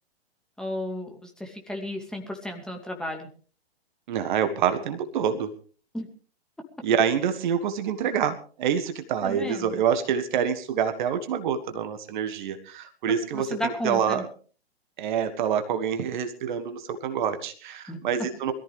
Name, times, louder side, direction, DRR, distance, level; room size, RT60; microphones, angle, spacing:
voice 1, 0.6-3.3 5.9-6.1 9.2-9.8 13.3-14.2 17.9-18.0, left 1 dB, ahead, 2 dB, 2.4 m, -33 dB
voice 2, 4.1-5.5 6.8-14.3 15.0-18.6, right 8 dB, 45° right, 9 dB, 1.6 m, -26 dB
22.0 x 14.0 x 3.4 m, 0.40 s
figure-of-eight pair, 120°, 32 cm